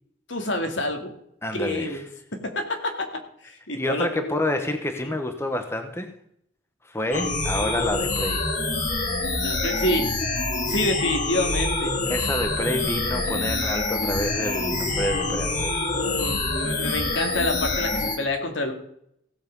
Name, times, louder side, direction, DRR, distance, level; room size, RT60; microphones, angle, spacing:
voice 1, 0.3-1.1 1.5-2.0 2.4-3.1 3.4-4.3 5.0-5.1 9.4-10.1 10.7-12.0 15.9-18.7, left 1 dB, 80° left, 4 dB, 2.4 m, -27 dB
voice 2, 1.4-2.0 3.7-6.1 6.8-8.5 12.1-15.8, left 1 dB, 15° left, 7 dB, 1.1 m, -28 dB
sound 1, 7.1-18.2, left 2 dB, 40° left, 2.0 m, -26 dB
16.5 x 7.7 x 5.4 m, 0.70 s
head